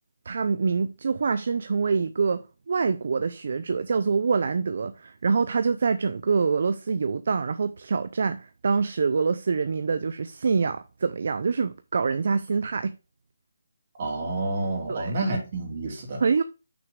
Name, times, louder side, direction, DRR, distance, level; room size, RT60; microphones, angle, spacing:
voice 1, 0.3-12.9 14.9-15.1 16.2-16.4, right 5 dB, 55° right, 0.5 m, -25 dB
voice 2, 14.0-16.2, right 2 dB, 40° right, 2.8 m, -29 dB
6.2 x 6.1 x 3.7 m
hypercardioid pair, 165°, 0 cm